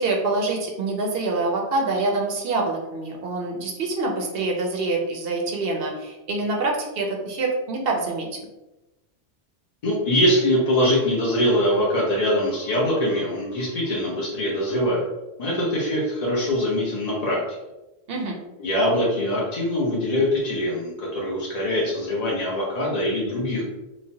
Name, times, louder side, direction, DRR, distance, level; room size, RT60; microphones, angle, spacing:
voice 1, 0.0-8.3 18.1-18.4, right 3 dB, 60° right, 0 dB, 0.7 m, -25 dB
voice 2, 9.8-15.1 15.4-17.4 18.6-23.6, equal, 50° left, -5 dB, 0.5 m, -23 dB
3.0 x 2.1 x 2.7 m, 1.0 s
omnidirectional pair, 1.3 m